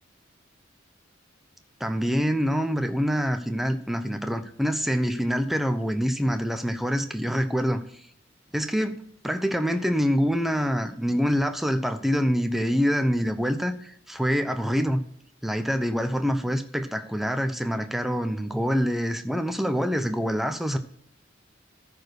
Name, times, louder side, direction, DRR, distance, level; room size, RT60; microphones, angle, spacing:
voice 1, 1.8-7.8 8.5-15.0 15.4-20.8, equal, ahead, 7 dB, 0.7 m, -25 dB
13.5 x 5.0 x 4.7 m, 0.65 s
head